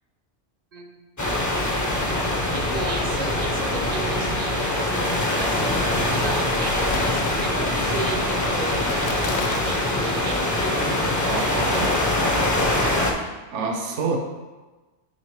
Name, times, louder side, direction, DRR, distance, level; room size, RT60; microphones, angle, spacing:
voice 1, 0.7-1.0 2.5-10.9 13.9-14.2, right 4 dB, 40° right, 3 dB, 0.6 m, -35 dB
sound 1, 1.2-13.1, left 1 dB, 20° left, 0.5 m, -23 dB
Long Length Walk Snow, 6.8-7.8 8.8-9.8, left 5 dB, 80° left, 0.9 m, -34 dB
voice 2, 11.3-12.0 13.5-14.2, right 4 dB, 75° right, 2 dB, 1.1 m, -27 dB
9.2 x 3.4 x 3.3 m, 1.2 s
omnidirectional pair, 1.2 m